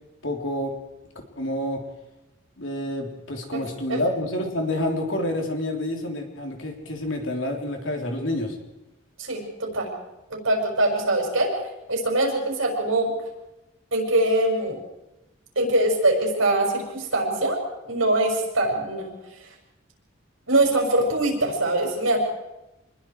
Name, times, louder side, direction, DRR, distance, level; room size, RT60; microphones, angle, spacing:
voice 1, 0.2-0.8 1.4-1.8 2.6-8.6, left 1 dB, 70° left, 2 dB, 3.6 m, -28 dB
voice 2, 9.2-9.9 10.3-11.5 11.9-13.1 13.9-14.8 15.6-17.6 17.9-19.1 20.5-22.2, right 2 dB, 85° right, 1 dB, 6.1 m, -23 dB
26.5 x 20.5 x 4.8 m, 0.96 s
head